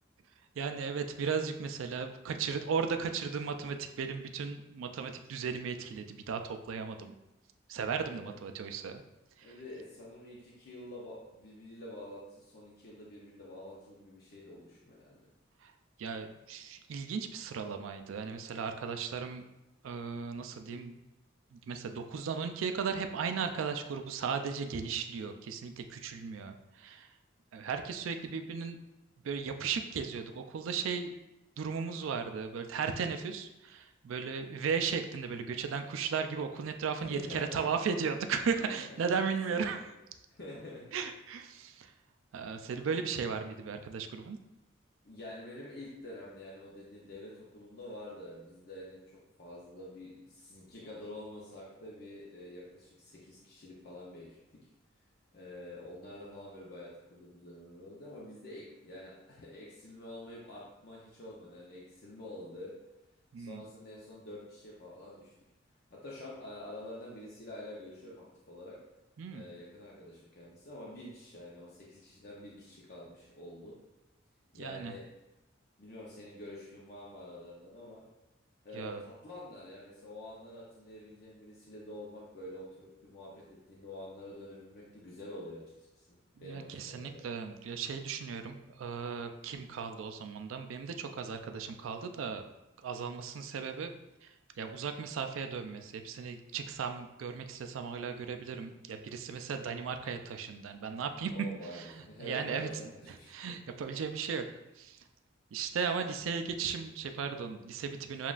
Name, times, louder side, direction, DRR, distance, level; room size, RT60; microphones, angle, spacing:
voice 1, 0.6-7.1 7.7-9.0 16.0-19.4 19.8-20.9 21.5-27.1 27.5-28.8 29.2-31.1 31.6-39.8 40.9-41.9 42.3-44.4 63.3-63.6 69.2-69.4 74.6-74.9 78.7-79.0 86.4-92.5 92.8-93.9 94.6-101.3 102.2-102.7 103.3-104.4 104.8-105.0 105.5-108.3, right 6 dB, 80° right, 7 dB, 0.4 m, -36 dB
voice 2, 9.4-15.2 36.9-37.6 38.6-38.7 39.5-39.8 40.3-40.9 45.1-49.0 49.4-54.6 55.3-62.7 63.4-65.3 65.9-68.8 69.3-73.7 74.5-75.0 75.8-78.0 78.6-87.2 101.3-103.3, left 1 dB, 50° left, -5 dB, 0.7 m, -47 dB
7.1 x 2.4 x 2.4 m, 0.96 s
head